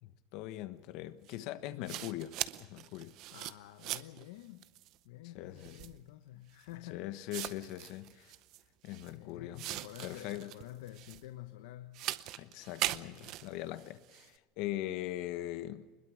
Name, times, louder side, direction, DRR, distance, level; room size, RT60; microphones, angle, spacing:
voice 1, 0.0-3.2 5.3-5.8 6.9-8.3 8.8-9.7 10.0-10.5 12.4-15.9, left 14 dB, 45° left, 1.3 m, -41 dB
sound 1, 1.3-1.4 1.9-4.2 4.6-5.0 5.6-6.0 6.7-6.8 7.3-9.1 9.6-11.3 11.9-14.3, right 15 dB, 40° right, 0.7 m, -40 dB
voice 2, 3.3-4.7 5.0-7.2 8.0-8.1 9.1-12.1, left 14 dB, 70° left, 1.0 m, -49 dB
24.0 x 21.5 x 6.3 m
supercardioid pair, 175°, 0 cm